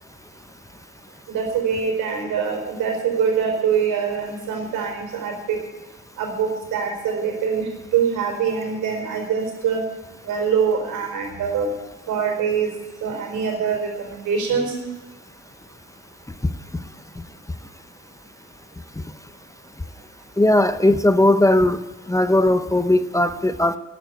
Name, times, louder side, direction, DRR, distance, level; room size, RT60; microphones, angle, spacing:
voice 1, 1.3-5.6 6.2-9.8 10.3-11.7 12.1-12.7 13.0-14.7, right 6 dB, 90° right, 3 dB, 4.5 m, -24 dB
voice 2, 20.4-21.8 22.1-23.8, left 1 dB, 10° left, 11 dB, 0.8 m, -17 dB
12.5 x 9.6 x 9.4 m, 1.1 s
cardioid pair, 90°, 30 cm